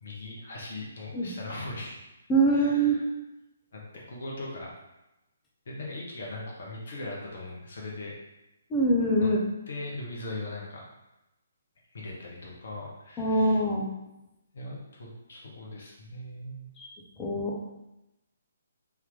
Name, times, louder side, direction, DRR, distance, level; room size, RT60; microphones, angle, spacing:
voice 1, 0.0-1.9 2.5-3.0 3.7-4.7 5.7-8.1 9.2-9.3 9.7-10.9 11.9-13.6 14.5-16.7, left 2 dB, 55° left, -3 dB, 1.1 m, -39 dB
voice 2, 2.3-3.0 8.7-9.4 13.2-13.9 16.8-16.9 17.2-17.5, right 2 dB, 15° left, -3 dB, 0.7 m, -24 dB
3.6 x 2.9 x 3.6 m, 0.93 s
figure-of-eight pair, 135°, 0 cm